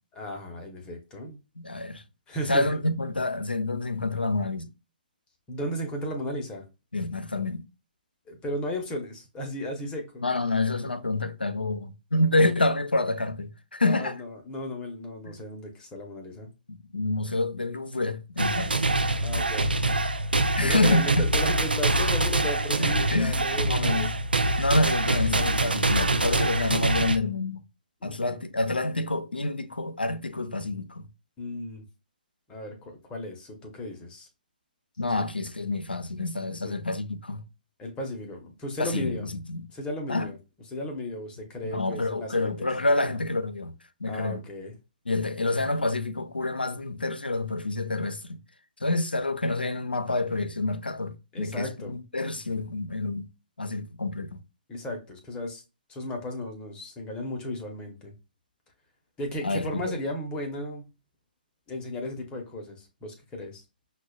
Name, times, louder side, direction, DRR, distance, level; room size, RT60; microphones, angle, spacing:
voice 1, 0.2-1.4 2.3-2.8 5.5-6.6 8.3-10.2 13.8-16.5 19.2-19.7 20.6-24.1 28.0-28.4 31.4-31.8 32.5-34.3 35.2-35.3 36.6-36.8 37.8-39.3 39.7-40.4 40.7-42.7 43.0-43.2 44.1-44.7 51.3-51.9 54.7-55.6 55.9-58.1 59.2-60.9 61.7-63.6, left 1 dB, 20° left, 0.7 m, -35 dB
voice 2, 1.6-2.0 2.5-4.7 6.9-7.7 10.2-14.2 15.2-15.3 16.7-18.9 20.6-21.1 22.8-24.1 24.6-27.6 28.0-31.1 35.0-37.4 38.8-39.7 40.1-40.3 41.6-43.7 44.0-44.4 45.1-48.4 48.8-53.3 53.6-54.4 59.4-59.9, left 2 dB, 90° left, 0.5 m, -28 dB
sound 1, 18.4-27.2, right 2 dB, 85° right, 0.4 m, -25 dB
6.0 x 2.2 x 2.3 m
figure-of-eight pair, 130°, 5 cm